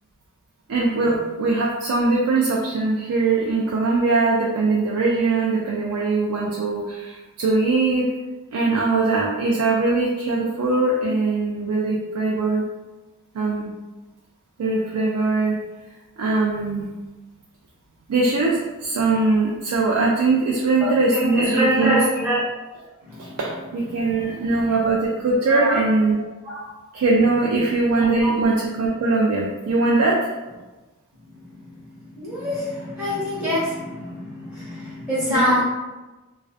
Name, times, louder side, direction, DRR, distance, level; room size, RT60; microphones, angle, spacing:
voice 1, 0.7-8.1 8.5-12.6 13.3-13.7 14.6-15.5 16.2-16.8 18.1-22.0 23.2-23.3 23.7-26.2 26.9-30.2 35.3-35.6, right 3 dB, 85° right, -4 dB, 0.4 m, -21 dB
voice 2, 21.1-22.4 22.8-23.4 23.9-24.3 25.5-25.7 26.4-26.6 27.6-27.7 28.2-28.3 31.3-35.6, equal, 5° right, -10 dB, 0.8 m, -25 dB
2.5 x 2.3 x 2.4 m, 1.2 s
head